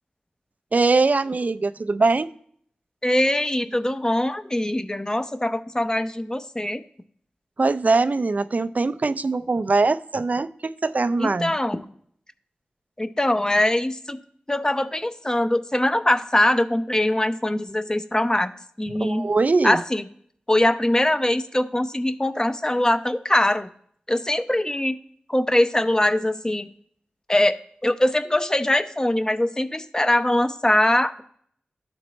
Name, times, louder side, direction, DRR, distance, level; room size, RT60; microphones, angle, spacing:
voice 1, 0.7-2.3 7.6-11.5 18.9-19.8, right 3 dB, 50° right, 0.4 m, -22 dB
voice 2, 3.0-6.8 11.2-11.9 13.0-14.2 14.5-18.5 18.8-19.3 19.6-20.0 20.5-23.7 24.1-25.0 25.3-26.7 27.3-27.6 27.8-31.2, left 1 dB, 20° left, 0.7 m, -22 dB
13.0 x 4.3 x 3.1 m
cardioid pair, 40°, 3 cm